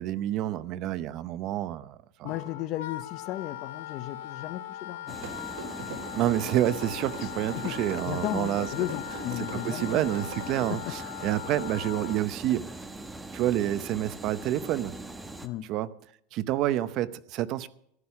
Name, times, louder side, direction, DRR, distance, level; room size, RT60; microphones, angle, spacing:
voice 1, 0.0-2.3 6.1-8.7 9.4-12.8 13.3-15.0 15.6-15.9 16.3-17.7, right 13 dB, 40° right, 0.7 m, -29 dB
Wind instrument woodwind instrument, 2.2-12.2, left 13 dB, 80° left, 1.1 m, -40 dB
voice 2, 2.2-5.3 5.8-6.0 7.2-7.3 7.5-7.7 8.0-10.1 10.7-10.9 15.4-15.7, left 14 dB, 40° left, 0.6 m, -35 dB
sound 1, 5.1-15.5, right 2 dB, 5° right, 1.0 m, -42 dB
sound 2, 5.2-10.6, right 4 dB, 75° right, 5.2 m, -40 dB
14.5 x 11.5 x 5.8 m
supercardioid pair, 160°, 0 cm